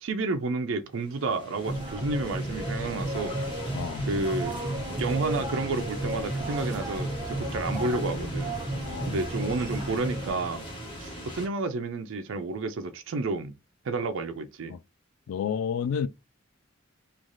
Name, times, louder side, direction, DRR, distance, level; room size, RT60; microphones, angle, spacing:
voice 1, 0.0-3.4 4.1-4.6 4.9-8.6 9.0-10.7 11.0-13.5 13.8-14.7, right 3 dB, 65° right, 0.4 m, -31 dB
sound 1, 0.9-11.5, equal, 25° left, 1.1 m, -39 dB
sound 2, 1.6-10.3, right 1 dB, 20° right, 0.7 m, -33 dB
voice 2, 3.7-4.1 8.9-9.2 14.7-14.8 15.3-16.1, left 7 dB, 85° left, 0.3 m, -30 dB
3.2 x 2.3 x 2.5 m
head